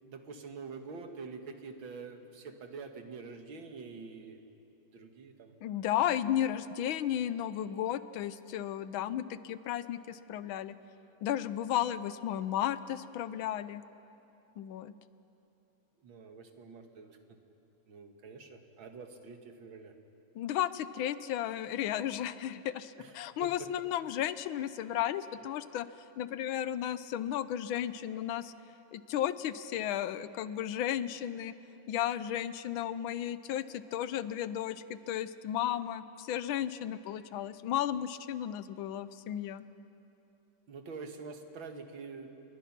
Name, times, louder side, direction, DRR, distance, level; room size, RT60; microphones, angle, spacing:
voice 1, 0.0-4.4 4.9-5.5 16.0-17.2 17.9-19.9 23.0-23.1 23.4-23.7 40.7-42.4, right 4 dB, 75° right, 5 dB, 2.3 m, -46 dB
voice 2, 5.6-10.8 11.2-13.8 14.6-14.9 20.3-25.9 26.2-28.5 28.9-31.5 31.9-39.6, left 11 dB, 80° left, 14 dB, 1.5 m, -34 dB
29.5 x 22.0 x 6.0 m, 2.9 s
omnidirectional pair, 2.2 m